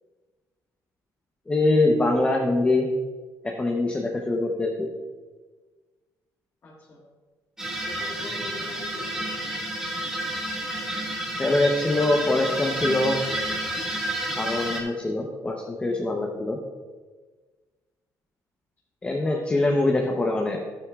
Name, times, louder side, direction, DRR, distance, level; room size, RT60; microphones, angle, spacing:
voice 1, 1.5-2.9 3.4-4.9 11.4-13.2 14.4-16.6 19.0-20.6, left 2 dB, 15° left, 0 dB, 0.9 m, -23 dB
voice 2, 6.6-7.0 7.9-9.3 19.2-20.0, left 2 dB, 40° left, -5 dB, 1.8 m, -42 dB
sound 1, 7.6-14.8, right 1 dB, 10° right, 1.8 m, -30 dB
12.0 x 9.4 x 2.5 m, 1.4 s
cardioid pair, 125°, 7 cm